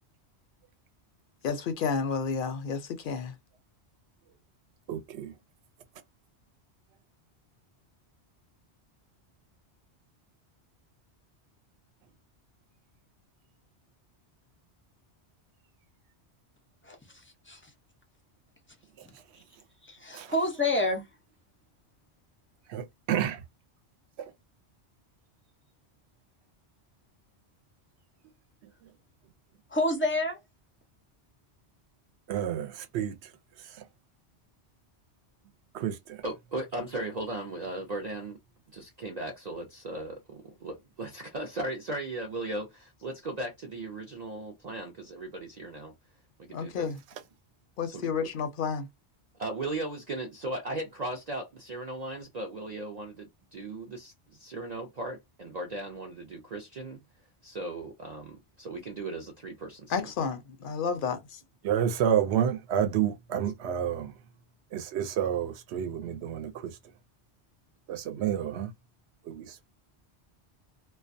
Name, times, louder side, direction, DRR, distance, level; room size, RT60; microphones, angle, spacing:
voice 1, 1.4-3.3 46.5-47.0 47.8-48.9 59.9-61.4, left 5 dB, 60° left, 0.6 m, -31 dB
voice 2, 4.9-5.4 19.0-19.2 20.1-20.3 22.7-23.4 24.2-24.3 28.6-28.9 32.3-33.9 35.7-36.2 61.6-64.2 64.7-66.8 67.9-68.7 69.2-69.7, right 9 dB, 75° right, 0.8 m, -30 dB
voice 3, 19.8-21.0 29.7-30.4, left 1 dB, 20° left, 0.3 m, -28 dB
voice 4, 36.2-38.4 38.7-45.9 46.5-46.9 47.9-48.1 49.4-57.0 57.4-59.9, right 2 dB, 50° right, 0.5 m, -37 dB
2.3 x 2.2 x 2.5 m
omnidirectional pair, 1.1 m